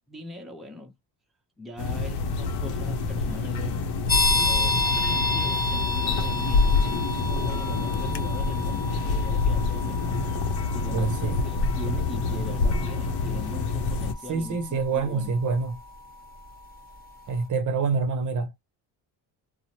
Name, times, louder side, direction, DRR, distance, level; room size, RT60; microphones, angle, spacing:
voice 1, 0.1-0.9 1.6-3.9 4.3-10.2 10.7-15.3, left 1 dB, ahead, 0.7 m, -41 dB
sound 1, 1.8-14.1, left 4 dB, 65° left, 0.7 m, -26 dB
sound 2, 4.1-16.6, left 2 dB, 20° left, 1.2 m, -31 dB
voice 2, 10.9-11.4 14.3-15.8 17.3-18.6, right 4 dB, 45° right, 0.7 m, -26 dB
2.8 x 2.0 x 2.8 m
cardioid pair, 110°, 43 cm